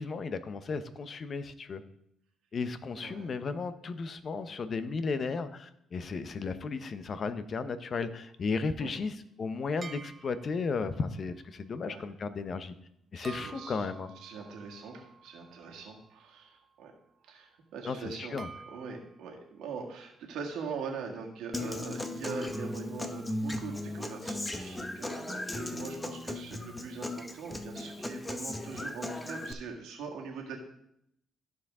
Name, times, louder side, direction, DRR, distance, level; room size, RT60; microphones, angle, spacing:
voice 1, 0.0-1.8 2.5-12.7 13.1-14.1 17.8-18.5, left 4 dB, 45° left, 11 dB, 0.7 m, -34 dB
voice 2, 2.9-3.3 8.8-8.9 11.8-12.0 13.1-13.8 14.2-16.9 17.2-18.3 18.7-30.6, right 5 dB, 85° right, 0 dB, 1.8 m, -42 dB
sound 1, 9.8-10.8 13.2-16.4 18.4-19.3, right 5 dB, 35° right, 0.7 m, -49 dB
Human voice / Acoustic guitar, 21.5-29.5, left 1 dB, 15° left, 0.8 m, -37 dB
14.0 x 4.8 x 3.6 m, 0.75 s
cardioid pair, 90°, 0 cm